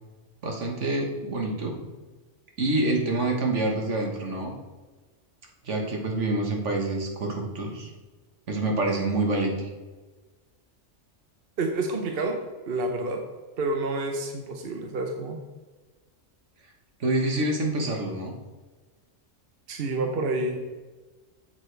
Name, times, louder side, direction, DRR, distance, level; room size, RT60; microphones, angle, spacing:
voice 1, 0.4-1.9 2.6-4.5 5.6-7.9 8.5-9.7 17.0-18.4, right 2 dB, 75° right, 1 dB, 1.8 m, -27 dB
voice 2, 11.6-12.4 12.7-13.2 13.6-15.4 19.7-20.6, right 2 dB, 55° right, 3 dB, 1.0 m, -28 dB
8.5 x 7.4 x 3.4 m, 1.3 s
omnidirectional pair, 1.2 m